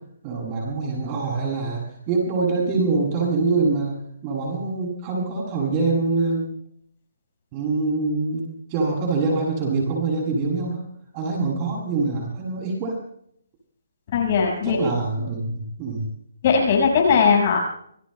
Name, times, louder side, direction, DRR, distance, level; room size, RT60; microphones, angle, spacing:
voice 1, 0.2-3.9 4.2-6.4 7.5-10.8 11.1-13.0 14.6-16.1, right 3 dB, 20° right, -2 dB, 7.5 m, -24 dB
voice 2, 14.1-14.8 16.4-17.6, left 6 dB, 35° left, -1 dB, 5.8 m, -19 dB
27.5 x 20.5 x 2.3 m, 0.67 s
hypercardioid pair, 170°, 0 cm